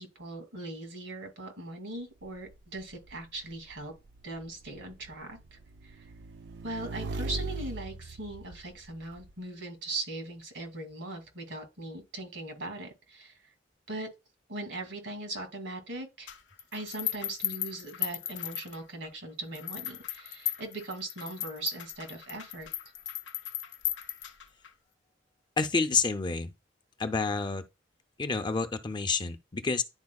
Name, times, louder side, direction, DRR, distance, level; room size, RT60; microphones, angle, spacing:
voice 1, 0.0-3.9 4.2-5.6 5.8-6.1 6.6-13.3 13.9-14.1 14.5-16.3 16.7-22.7, right 2 dB, 85° right, 2.2 m, -40 dB
Motorcycle / Engine, 2.2-9.3, right 2 dB, 65° right, 0.4 m, -41 dB
sound 1, 16.3-19.1 19.5-24.7, left 12 dB, 70° left, 0.6 m, -36 dB
voice 2, 25.6-26.5 27.0-27.6 28.2-29.8, left 4 dB, 25° left, 0.5 m, -29 dB
10.5 x 4.2 x 2.3 m
head